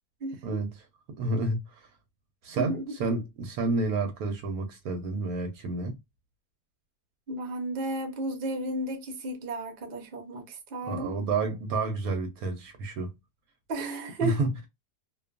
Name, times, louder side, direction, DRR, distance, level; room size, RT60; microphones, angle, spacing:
voice 1, 0.2-0.6 2.6-2.9 7.3-11.2 13.7-14.4, right 1 dB, 50° right, 0.6 m, -33 dB
voice 2, 1.1-1.6 2.4-6.0 10.8-13.1 14.2-14.5, right 3 dB, 70° right, 1.0 m, -30 dB
2.5 x 2.3 x 2.3 m
omnidirectional pair, 1.8 m